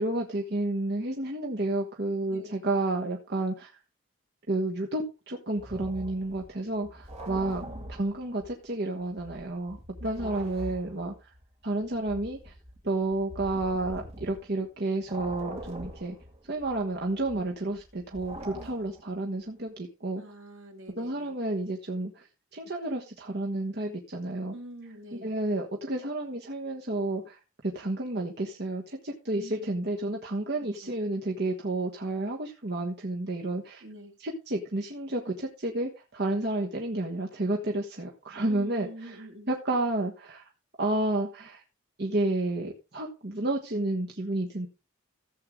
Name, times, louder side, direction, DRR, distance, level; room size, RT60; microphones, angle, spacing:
voice 1, 0.0-3.7 4.5-7.6 7.9-11.3 11.6-12.5 12.8-16.1 16.4-20.2 20.9-22.3 22.5-24.5 25.1-33.8 34.2-39.2 39.5-40.4 40.8-41.6 42.0-44.7, right 2 dB, 50° right, 1.4 m, -31 dB
sound 1, 5.6-8.7 9.0-14.7 15.0-19.1, equal, 30° right, 2.7 m, -44 dB
voice 2, 7.3-7.9 10.0-10.6 18.5-18.9 20.2-21.3 24.5-25.3 29.3-29.8 30.6-30.9 33.8-34.2 38.5-39.5, right 1 dB, 70° right, 2.6 m, -46 dB
14.5 x 7.8 x 3.7 m
head